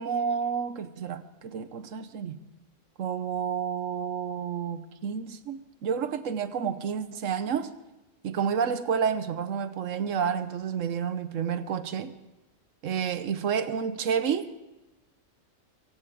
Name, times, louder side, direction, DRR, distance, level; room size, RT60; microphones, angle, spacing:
voice 1, 0.0-2.4 3.0-7.7 8.2-12.2 12.8-14.5, right 7 dB, 70° right, 12 dB, 1.2 m, -30 dB
23.5 x 16.5 x 3.6 m, 0.97 s
omnidirectional pair, 1.4 m